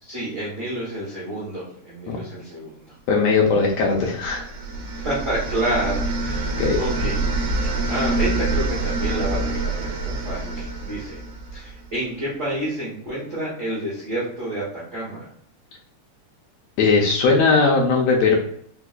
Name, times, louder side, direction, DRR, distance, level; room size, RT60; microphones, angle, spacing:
voice 1, 0.0-2.7 4.9-7.2 7.9-11.2 11.5-15.3, right 1 dB, 65° right, -7 dB, 0.7 m, -29 dB
voice 2, 3.1-4.4 6.5-6.8 16.8-18.4, left 4 dB, 80° left, -2 dB, 1.5 m, -18 dB
sound 1, 3.9-11.9, right 2 dB, 80° right, 1.4 m, -26 dB
4.7 x 2.1 x 2.3 m, 0.66 s
omnidirectional pair, 3.3 m